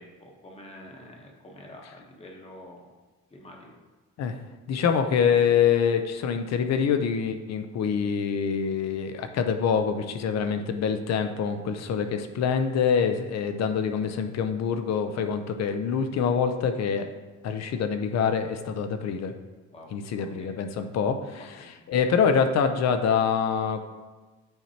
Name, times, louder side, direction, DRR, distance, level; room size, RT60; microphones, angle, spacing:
voice 1, 0.0-2.9 3.3-3.8 19.7-19.9 20.2-20.5 21.6-21.7, left 1 dB, 20° left, 0 dB, 1.0 m, -47 dB
voice 2, 4.7-17.1 17.4-19.3 19.9-21.4 21.9-23.8, left 7 dB, 60° left, 8 dB, 0.6 m, -25 dB
8.9 x 4.4 x 2.8 m, 1.3 s
cardioid pair, 170°, 30 cm